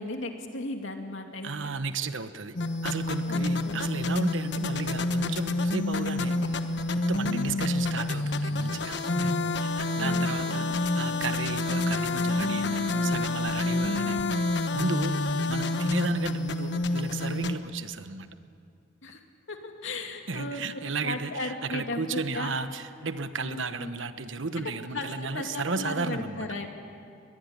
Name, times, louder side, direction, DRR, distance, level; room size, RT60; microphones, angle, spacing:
voice 1, 0.0-1.5 3.3-3.9 7.2-7.5 10.0-10.7 19.0-19.2 19.5-20.6 21.0-22.5 23.4-23.9 24.6-24.7 24.9-25.1 25.3-26.7, left 2 dB, 90° left, 4 dB, 2.6 m, -36 dB
voice 2, 1.4-2.6 2.8-6.4 6.9-9.3 9.6-14.3 14.7-18.3 20.3-26.5, right 3 dB, 85° right, 10 dB, 1.2 m, -34 dB
sound 1, 2.6-17.6, left 2 dB, 65° left, 1.2 m, -28 dB
23.0 x 21.0 x 9.8 m, 2.5 s
head